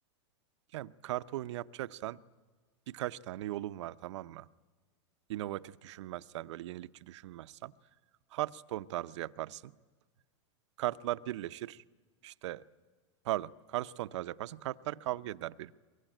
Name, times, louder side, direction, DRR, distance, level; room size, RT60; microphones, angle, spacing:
voice 1, 0.7-2.2 2.9-4.5 5.3-7.7 8.3-9.7 10.8-11.8 12.2-12.6 13.2-15.7, right 15 dB, 70° right, 15 dB, 0.7 m, -38 dB
23.0 x 22.5 x 9.1 m, 1.4 s
hypercardioid pair, 120°, 15 cm